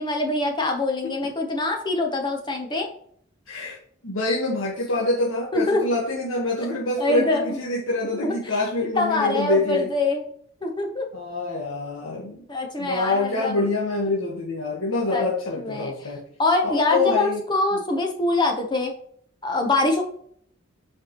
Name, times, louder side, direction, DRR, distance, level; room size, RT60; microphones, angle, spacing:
voice 1, 0.0-2.9 5.5-5.8 7.0-7.6 8.2-8.6 8.9-10.2 10.6-11.1 12.5-13.6 15.1-15.2 15.6-15.9 16.4-18.9 19.4-20.0, left 2 dB, 20° left, 2 dB, 0.9 m, -24 dB
voice 2, 3.5-3.8 4.0-9.9 11.1-12.4 12.8-16.2 16.6-17.4, left 2 dB, 85° left, -4 dB, 1.4 m, -26 dB
7.8 x 5.1 x 3.0 m, 0.63 s
head